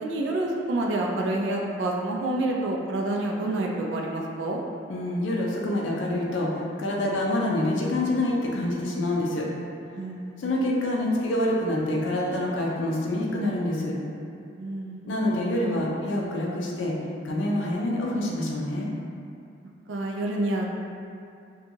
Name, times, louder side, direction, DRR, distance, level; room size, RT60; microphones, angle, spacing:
voice 1, 0.0-4.6 10.0-10.4 14.6-15.1 19.9-20.7, right 2 dB, 80° right, -1 dB, 0.3 m, -28 dB
voice 2, 4.9-9.5 10.4-13.9 15.0-16.9 17.2-18.9, left 1 dB, 80° left, -3 dB, 0.4 m, -26 dB
2.8 x 2.3 x 2.6 m, 2.5 s
head